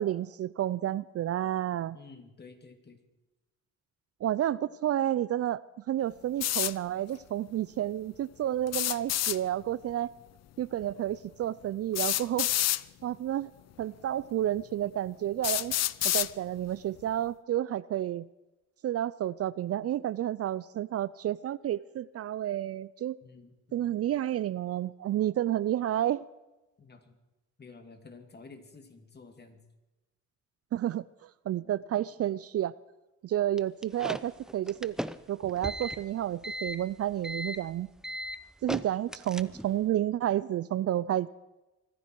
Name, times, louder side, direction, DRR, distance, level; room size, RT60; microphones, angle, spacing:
voice 1, 0.0-2.0 4.2-5.6 5.9-10.1 10.6-12.5 13.0-13.5 13.8-15.7 16.0-18.3 18.8-23.2 23.7-26.2 30.7-32.7 33.2-35.0 35.3-37.9 38.6-41.3, right 12 dB, 55° right, 19 dB, 0.4 m, -30 dB
voice 2, 1.9-3.0 23.2-23.9 26.8-27.2 27.6-29.6, left 4 dB, 35° left, 7 dB, 2.5 m, -51 dB
sound 1, 6.4-6.7 8.7-9.4 10.8-10.9 11.9-12.8 13.8-13.9 14.6-14.7 15.4-16.3, left 13 dB, 60° left, 0.5 m, -28 dB
sound 2, 33.6-39.8, equal, ahead, 0.6 m, -38 dB
24.5 x 10.0 x 4.6 m, 1.1 s
cardioid pair, 90°, 30 cm